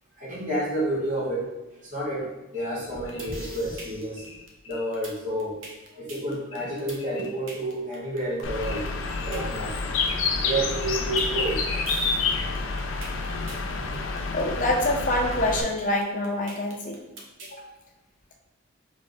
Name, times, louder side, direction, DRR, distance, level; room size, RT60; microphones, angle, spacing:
voice 1, 0.2-4.3 4.7-5.6 5.9-8.9 9.2-9.8 10.3-11.9 12.4-12.7 13.7-14.0, right 1 dB, 40° right, -6 dB, 1.3 m, -30 dB
sound 1, 2.5-3.4 4.2-5.0 6.5-7.4 8.6-9.4 10.8-11.7, left 5 dB, 60° left, 1.0 m, -43 dB
sound 2, 3.1-17.6, right 2 dB, 80° right, 0.9 m, -44 dB
Bird, 8.4-15.6, left 4 dB, 90° left, 0.5 m, -28 dB
voice 2, 14.3-17.0 17.5-17.6, left 1 dB, 40° left, 0 dB, 0.7 m, -26 dB
3.4 x 3.3 x 4.0 m, 1.0 s
head